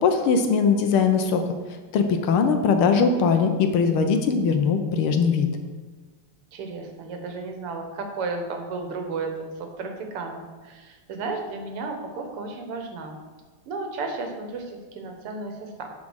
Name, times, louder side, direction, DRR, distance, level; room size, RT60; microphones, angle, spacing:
voice 1, 0.0-1.4 1.9-5.5, left 5 dB, 75° left, 6 dB, 1.7 m, -20 dB
voice 2, 6.5-13.2 13.7-15.9, right 3 dB, 80° right, 4 dB, 2.1 m, -33 dB
8.5 x 5.0 x 6.3 m, 1.4 s
omnidirectional pair, 2.4 m